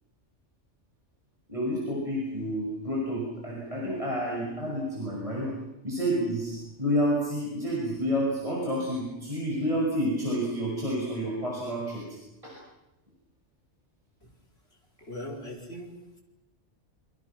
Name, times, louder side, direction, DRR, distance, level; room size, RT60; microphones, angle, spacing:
voice 1, 1.5-5.5 5.8-12.1 12.4-12.5, equal, 30° right, -4 dB, 6.3 m, -29 dB
voice 2, 15.0-16.2, left 1 dB, 60° left, -1 dB, 4.8 m, -40 dB
28.0 x 25.0 x 6.0 m, 0.95 s
omnidirectional pair, 1.2 m